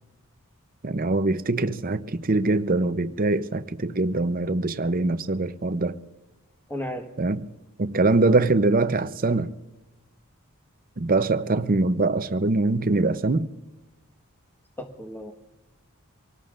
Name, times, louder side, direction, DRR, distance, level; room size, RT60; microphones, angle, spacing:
voice 1, 0.8-5.9 7.2-7.5 7.8-9.5 11.0-13.5, right 2 dB, 40° right, 0.7 m, -23 dB
voice 2, 6.7-7.0 14.8-15.3, left 1 dB, 10° left, 1.5 m, -33 dB
26.0 x 18.0 x 2.6 m
head